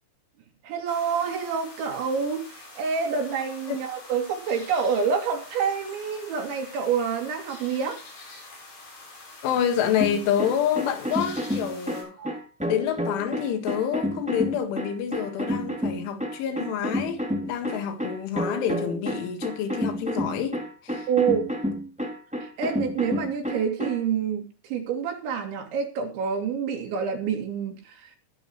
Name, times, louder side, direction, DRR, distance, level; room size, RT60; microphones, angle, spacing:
voice 1, 0.6-8.0 12.2-12.4 21.1-21.5 22.4-28.2, right 6 dB, 75° right, 5.1 m, -27 dB
sound 1, 0.9-12.0, left 2 dB, 60° left, 8.9 m, -45 dB
voice 2, 9.4-12.2 12.7-21.1, left 9 dB, 85° left, 4.2 m, -28 dB
sound 2, 10.0-24.0, equal, 5° right, 0.8 m, -30 dB
21.5 x 10.5 x 3.2 m
omnidirectional pair, 5.4 m